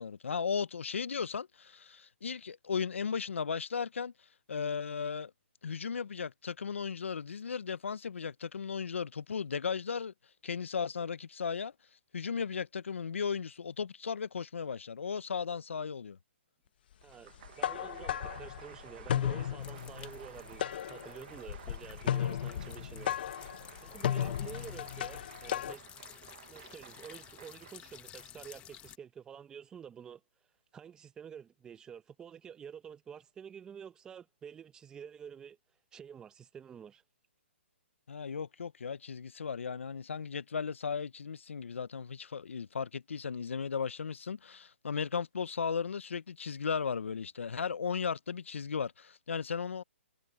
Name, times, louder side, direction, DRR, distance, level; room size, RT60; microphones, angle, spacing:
voice 1, 0.0-4.1 4.5-5.3 5.6-10.1 10.4-11.7 12.1-16.2 38.1-49.8, left 6 dB, 80° left, 0.9 m, -36 dB
voice 2, 17.0-20.6 20.9-23.5 23.8-25.8 26.5-30.2 30.7-35.6 35.9-37.0, right 8 dB, 10° right, 1.0 m, -49 dB
Applause, 17.0-28.9, right 13 dB, 45° right, 1.4 m, -54 dB
sound 1, 17.4-25.7, left 10 dB, 50° left, 1.0 m, -35 dB
sound 2, 19.6-29.0, left 13 dB, 20° left, 1.9 m, -53 dB
hypercardioid pair, 150°, 7 cm